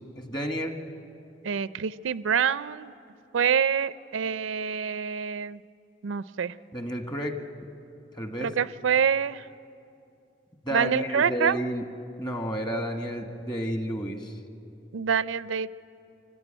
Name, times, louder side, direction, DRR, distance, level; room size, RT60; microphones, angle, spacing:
voice 1, 0.2-0.8 6.7-7.4 8.1-8.5 10.6-11.8 12.2-14.3, equal, 25° left, 5 dB, 1.5 m, -31 dB
voice 2, 1.4-2.9 3.3-5.6 6.0-6.5 8.4-9.4 10.7-11.6 14.9-15.7, right 7 dB, 85° right, 16 dB, 0.5 m, -26 dB
25.5 x 15.0 x 8.8 m, 2.7 s
head